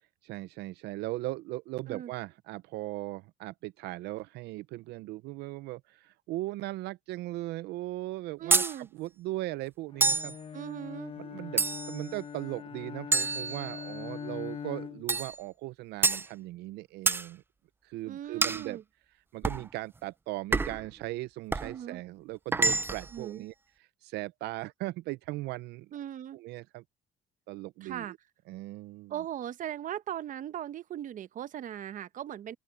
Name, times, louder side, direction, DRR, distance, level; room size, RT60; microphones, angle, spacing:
voice 1, 0.2-10.4 11.2-17.4 17.8-18.8 19.3-25.9 26.3-26.8 27.5-28.2 28.5-29.1, right 18 dB, 80° right, 0.5 m, -38 dB
voice 2, 8.4-8.9 10.5-11.1 18.1-18.8 21.6-22.0 23.1-23.4 25.9-26.4 27.8-28.1 29.1-32.6, right 11 dB, 50° right, 0.8 m, -38 dB
sound 1, 8.5-8.8 10.0-10.4 11.6-12.0 13.1-14.0 15.1-15.4 16.0-16.3 17.1-17.3 18.4-18.7 19.4-19.7 20.5-20.9 21.5-21.7 22.5-23.1, right 3 dB, 15° right, 0.3 m, -27 dB
Bowed string instrument, 9.9-15.2, left 7 dB, 35° left, 0.9 m, -42 dB
open air
cardioid pair, 110°, 17 cm